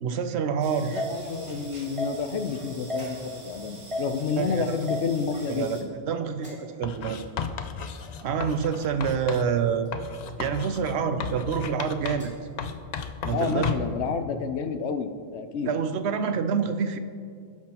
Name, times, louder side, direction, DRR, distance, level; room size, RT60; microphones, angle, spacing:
voice 1, 0.0-1.0 4.4-4.8 5.5-5.8 6.1-7.3 8.2-9.9 10.4-12.3 13.2-13.7 15.6-17.0, right 6 dB, 75° right, 9 dB, 0.8 m, -27 dB
sound 1, 0.6-5.8, equal, 30° right, 1.0 m, -36 dB
voice 2, 0.9-5.9 13.3-15.7, left 5 dB, 80° left, 8 dB, 1.0 m, -30 dB
sound 2, 2.5-3.5 5.2-5.8 6.4-7.1 8.0-8.9 9.8-10.4 11.3-11.7 12.1-12.6, equal, 5° right, 2.3 m, -50 dB
Writing, 6.8-9.5 9.9-12.3 12.6-14.0, left 6 dB, 55° left, 0.4 m, -34 dB
17.0 x 5.9 x 2.9 m, 2.2 s
omnidirectional pair, 1.1 m